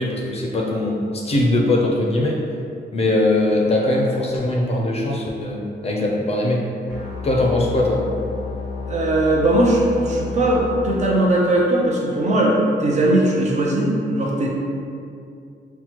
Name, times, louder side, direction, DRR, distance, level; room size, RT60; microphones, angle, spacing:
voice 1, 0.0-2.4 2.9-6.6 7.2-8.0, left 2 dB, 35° left, -2 dB, 0.5 m, -21 dB
sound 1, 6.9-10.9, left 4 dB, 80° right, 0.9 m, -31 dB
voice 2, 8.9-14.5, right 1 dB, 40° right, -3 dB, 0.6 m, -19 dB
5.7 x 2.2 x 2.9 m, 2.5 s
wide cardioid pair, 175°, 18 cm